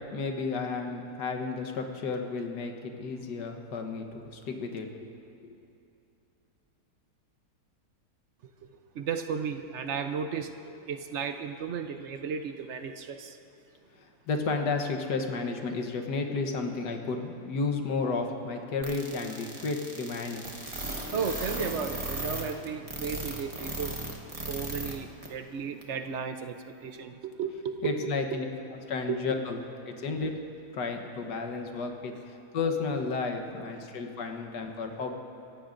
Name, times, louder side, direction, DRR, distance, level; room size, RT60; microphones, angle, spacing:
voice 1, 0.1-4.9 5.4-5.6 14.3-20.5 27.8-28.5 28.9-29.6 29.9-30.3 30.7-32.2 32.5-35.1, left 4 dB, 85° left, 4 dB, 1.7 m, -32 dB
voice 2, 9.0-13.4 21.1-24.0 24.5-28.5 29.1-29.2, right 6 dB, 60° right, 7 dB, 0.8 m, -34 dB
sound 1, 18.8-24.9 25.2-25.3 25.8-25.9, right 1 dB, 20° right, 1.5 m, -36 dB
27.5 x 14.5 x 2.6 m, 2.7 s
omnidirectional pair, 1.8 m